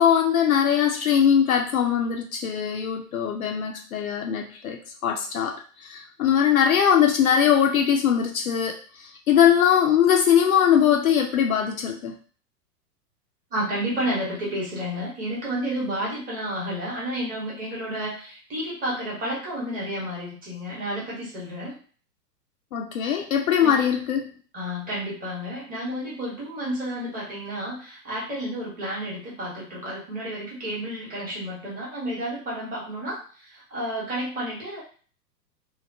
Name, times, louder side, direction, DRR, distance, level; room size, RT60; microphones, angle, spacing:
voice 1, 0.0-5.5 5.8-8.8 9.3-12.1 22.7-24.3, left 8 dB, 60° left, 2 dB, 0.6 m, -21 dB
voice 2, 13.5-21.8 23.6-23.8 24.5-34.8, equal, 15° right, -6 dB, 1.1 m, -31 dB
2.8 x 2.1 x 2.5 m, 0.41 s
figure-of-eight pair, 105°, 50 cm